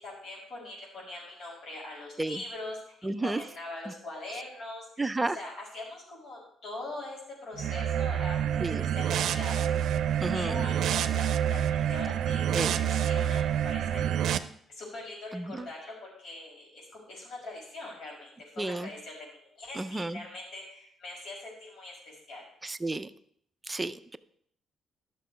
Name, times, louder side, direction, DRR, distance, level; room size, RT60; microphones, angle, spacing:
voice 1, 0.0-5.1 5.3-14.2 14.7-22.5, left 2 dB, 70° left, -3 dB, 5.5 m, -42 dB
voice 2, 3.0-3.4 5.0-5.4 8.6-8.9 10.2-10.6 12.5-12.7 15.3-15.7 18.6-18.9 19.8-20.2 22.6-23.1 23.7-24.2, right 2 dB, 15° right, 11 dB, 0.5 m, -32 dB
sound 1, 7.6-14.4, right 10 dB, 75° right, 0.6 m, -28 dB
11.5 x 6.7 x 5.1 m, 0.66 s
cardioid pair, 90°, 0 cm